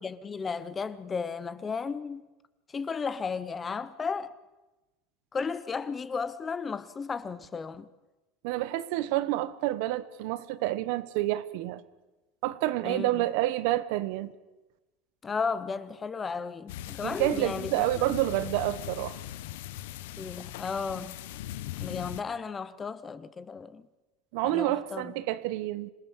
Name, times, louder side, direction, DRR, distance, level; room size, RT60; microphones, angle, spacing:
voice 1, 0.0-2.2 2.7-4.3 5.3-7.9 12.8-13.2 15.2-17.7 18.0-18.2 20.2-21.2 21.8-23.9 24.4-25.1, left 5 dB, 15° left, 0.8 m, -34 dB
voice 2, 8.4-11.8 12.4-14.3 17.0-19.2 24.3-25.9, right 16 dB, 60° right, 1.1 m, -29 dB
sound 1, 16.7-22.2, left 13 dB, 80° left, 1.0 m, -40 dB
26.5 x 18.0 x 7.2 m
supercardioid pair, 155°, 0 cm